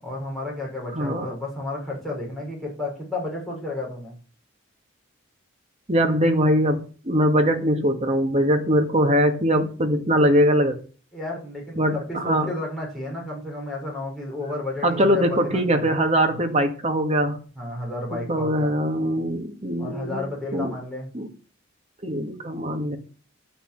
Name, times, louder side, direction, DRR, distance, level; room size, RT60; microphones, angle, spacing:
voice 1, 0.0-4.2 11.1-15.9 17.5-18.7 19.8-21.1, left 2 dB, ahead, 6.5 m, -32 dB
voice 2, 0.9-1.3 5.9-10.8 11.8-12.5 14.8-17.4 18.1-20.2 20.5-20.7 21.1-21.3 22.0-23.0, equal, 35° right, 2.0 m, -22 dB
11.5 x 6.0 x 8.9 m
head